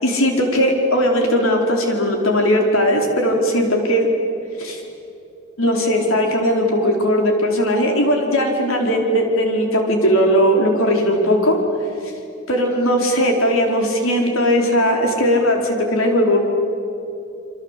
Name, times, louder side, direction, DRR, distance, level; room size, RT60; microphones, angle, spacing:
voice 1, 0.0-4.1 4.6-4.8 5.6-11.6 12.5-16.4, equal, 75° left, 2 dB, 4.8 m, -18 dB
28.0 x 25.0 x 8.5 m, 2.7 s
head